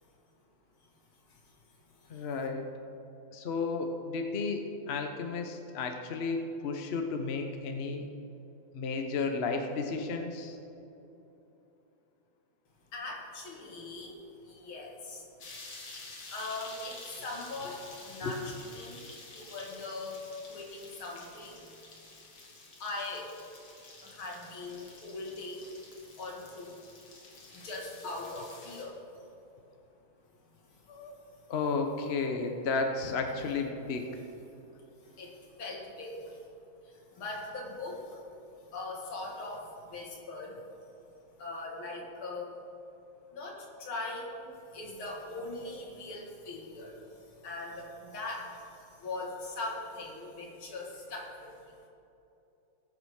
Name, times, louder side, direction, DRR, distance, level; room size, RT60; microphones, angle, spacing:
voice 1, 1.3-1.6 1.9-2.3 12.9-15.3 16.0-19.1 19.3-21.8 22.8-23.3 24.0-26.8 27.5-29.3 30.7-31.0 35.0-36.4 36.8-38.2 38.6-40.6 41.4-42.6 43.3-51.8, left 2 dB, 80° left, -1 dB, 2.8 m, -41 dB
voice 2, 2.1-2.7 3.3-8.1 8.7-10.6 18.2-18.3 30.9-31.2 31.5-34.1, left 4 dB, 45° left, 4 dB, 0.9 m, -33 dB
sound 1, 15.4-28.8, left 3 dB, 65° left, 2.5 m, -50 dB
20.0 x 6.8 x 4.8 m, 2.9 s
omnidirectional pair, 2.2 m